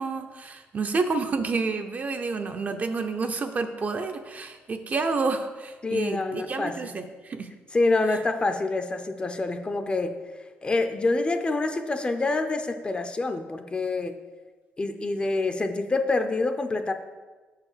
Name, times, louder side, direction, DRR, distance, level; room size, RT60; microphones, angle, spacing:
voice 1, 0.0-7.5, right 4 dB, 40° right, 6 dB, 0.7 m, -29 dB
voice 2, 5.8-6.9 7.7-10.2 10.6-14.1 14.8-16.9, left 3 dB, 25° left, 7 dB, 0.6 m, -26 dB
6.4 x 4.9 x 6.7 m, 1.3 s
cardioid pair, 110°, 4 cm